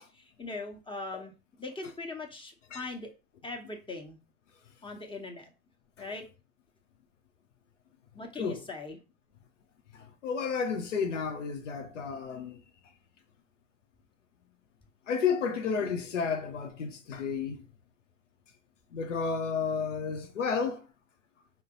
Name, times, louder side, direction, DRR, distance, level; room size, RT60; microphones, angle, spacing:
voice 1, 0.0-3.1 3.4-4.2 4.8-5.5 6.0-6.3 8.1-9.0, left 2 dB, 15° left, 1.2 m, -40 dB
voice 2, 9.9-12.6 15.1-17.6 18.9-20.8, left 6 dB, 85° left, 0.6 m, -32 dB
5.2 x 2.0 x 3.7 m
figure-of-eight pair, 65°, 36 cm